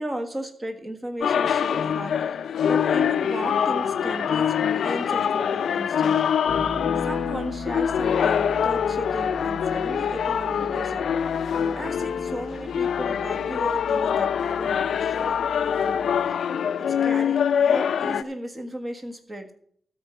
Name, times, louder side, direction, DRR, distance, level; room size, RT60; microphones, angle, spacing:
voice 1, 0.0-2.4 2.6-6.4 7.0-11.0 11.7-15.4 15.8-16.0 16.7-19.5, right 1 dB, 20° right, 6 dB, 1.4 m, -35 dB
sound 1, 1.2-18.2, left 8 dB, 90° left, 0.4 m, -24 dB
Bass guitar, 6.5-16.3, right 2 dB, 40° right, 0.9 m, -41 dB
13.0 x 4.4 x 7.7 m, 0.63 s
wide cardioid pair, 145°, 0 cm